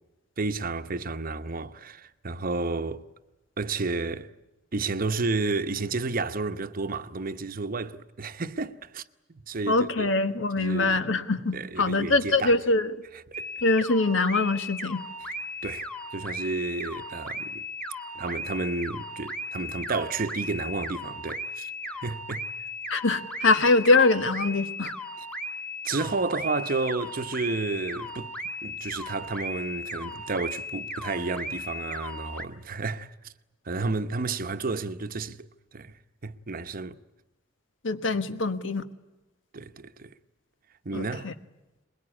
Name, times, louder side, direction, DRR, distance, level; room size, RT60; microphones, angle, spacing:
voice 1, 0.4-3.0 3.6-4.3 4.7-9.0 9.3-10.1 10.6-11.0 11.5-12.5 13.3-13.5 15.6-17.6 18.1-22.5 25.8-28.3 28.6-33.3 33.6-36.0 36.2-37.0 39.5-40.1 40.8-41.3, right 3 dB, 50° right, 0.9 m, -31 dB
voice 2, 9.7-12.9 13.6-15.0 22.9-24.9 37.8-38.8 40.9-41.3, left 3 dB, 85° left, 1.4 m, -23 dB
sound 1, 13.3-32.5, left 1 dB, 5° left, 1.4 m, -37 dB
22.5 x 21.5 x 9.8 m
head